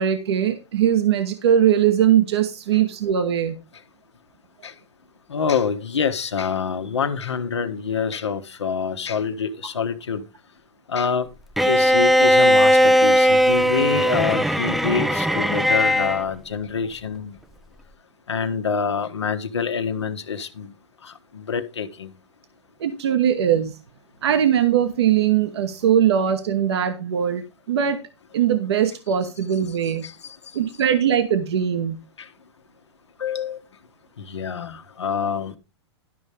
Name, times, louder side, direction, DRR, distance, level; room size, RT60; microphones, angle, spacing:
voice 1, 0.0-3.6 22.8-23.8 24.2-28.0 28.3-30.0 30.5-32.0, right 9 dB, 65° right, 1.1 m, -20 dB
voice 2, 5.3-10.2 10.9-11.3 11.6-17.4 18.3-20.7 21.0-22.1 30.0-30.1 33.2-33.6 34.2-35.6, left 6 dB, 80° left, 1.3 m, -26 dB
Bowed string instrument, 11.6-16.2, equal, ahead, 0.5 m, -18 dB
12.0 x 5.4 x 4.9 m
figure-of-eight pair, 105°, 15 cm